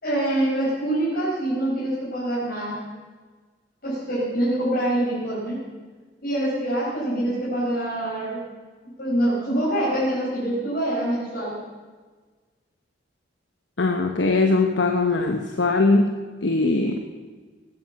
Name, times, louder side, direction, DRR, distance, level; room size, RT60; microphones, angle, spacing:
voice 1, 0.0-2.8 3.8-5.6 6.2-8.4 9.0-11.6, right 1 dB, 55° left, -8 dB, 4.9 m, -25 dB
voice 2, 13.8-16.2 16.4-17.0, left 3 dB, 75° left, 4 dB, 1.1 m, -21 dB
19.5 x 9.6 x 7.1 m, 1.4 s
head